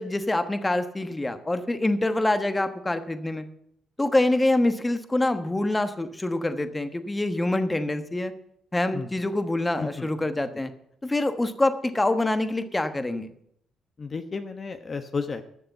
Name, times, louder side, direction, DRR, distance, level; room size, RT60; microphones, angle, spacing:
voice 1, 0.0-3.5 4.0-8.3 8.7-10.7 11.0-13.3, left 2 dB, 15° left, 10 dB, 1.2 m, -25 dB
voice 2, 9.8-10.1 10.5-10.6 14.0-15.4, left 4 dB, 35° left, 8 dB, 1.0 m, -32 dB
13.5 x 6.8 x 8.0 m, 0.71 s
cardioid pair, 90°, 0 cm